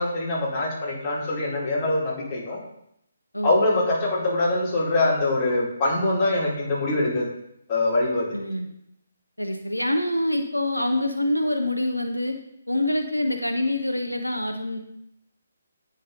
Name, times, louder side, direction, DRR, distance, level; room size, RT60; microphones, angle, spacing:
voice 1, 0.0-2.6 3.4-7.3 7.7-8.3, left 2 dB, 25° left, -7 dB, 2.3 m, -23 dB
voice 2, 8.3-8.7 9.4-12.4 12.7-14.8, left 1 dB, 85° left, 5 dB, 0.6 m, -25 dB
9.2 x 5.4 x 2.5 m, 0.77 s
figure-of-eight pair, 140°, 0 cm